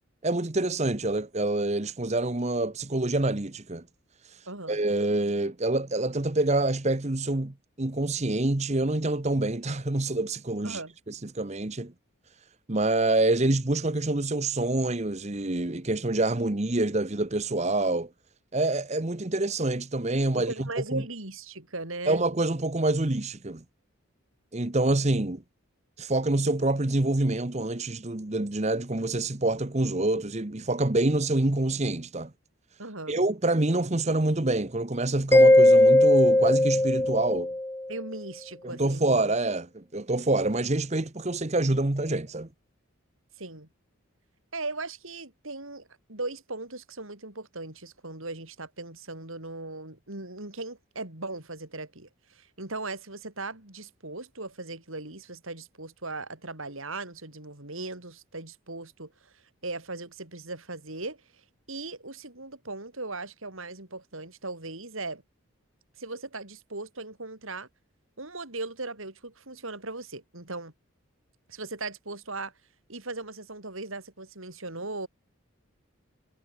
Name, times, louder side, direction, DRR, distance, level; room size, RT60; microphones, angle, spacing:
voice 1, 0.2-3.8 4.2-10.8 11.1-11.9 12.7-18.1 18.5-21.0 22.1-23.6 24.5-25.4 26.0-32.3 33.1-37.5 38.6-42.5, right 2 dB, 30° right, 1.0 m, -26 dB
voice 2, 4.5-4.8 10.6-10.9 20.4-22.2 32.8-33.2 37.9-39.2 43.4-43.7 44.5-61.4 61.7-65.2 66.0-67.7 68.2-70.7 71.5-72.5 72.9-75.1, right 2 dB, 70° right, 5.0 m, -38 dB
Mallet percussion, 35.3-37.9, left 1 dB, 10° left, 0.4 m, -18 dB
head